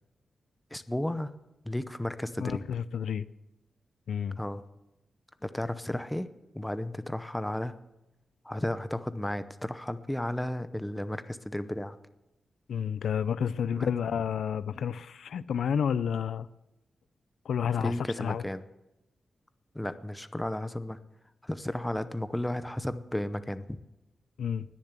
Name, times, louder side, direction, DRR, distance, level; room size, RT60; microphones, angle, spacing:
voice 1, 0.7-1.3 1.6-2.6 4.4-4.6 5.4-6.3 6.5-7.8 8.4-12.0 13.8-13.9 17.6-18.6 19.7-21.0 21.4-23.8, left 1 dB, 5° left, 12 dB, 0.7 m, -33 dB
voice 2, 2.4-3.2 4.1-4.4 12.7-16.5 17.5-18.4 24.4-24.6, left 7 dB, 85° left, 16 dB, 0.5 m, -30 dB
20.0 x 7.2 x 8.2 m, 0.94 s
wide cardioid pair, 130°, 0 cm